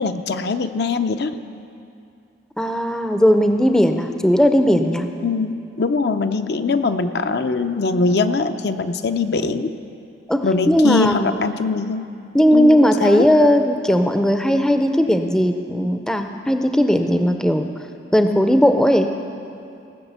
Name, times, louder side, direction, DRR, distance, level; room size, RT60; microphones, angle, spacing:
voice 1, 0.0-1.3 5.2-9.7 10.4-12.1 12.5-13.2, left 4 dB, 60° left, 8 dB, 0.5 m, -22 dB
voice 2, 2.6-5.0 10.3-11.4 12.3-17.7 18.1-19.1, equal, 5° left, 6 dB, 0.5 m, -17 dB
18.0 x 6.3 x 8.0 m, 2.5 s
head